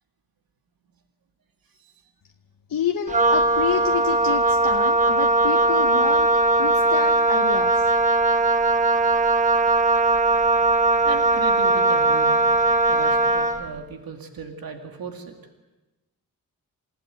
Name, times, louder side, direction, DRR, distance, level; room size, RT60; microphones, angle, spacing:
voice 1, 2.7-6.3 6.6-7.9, left 9 dB, 70° left, 7 dB, 1.0 m, -29 dB
Wind instrument woodwind instrument, 3.1-13.7, right 2 dB, 20° right, 1.1 m, -19 dB
voice 2, 11.0-12.4 12.9-15.3, right 5 dB, 75° right, 4 dB, 2.3 m, -36 dB
27.5 x 17.0 x 9.3 m, 1.1 s
wide cardioid pair, 150°, 35 cm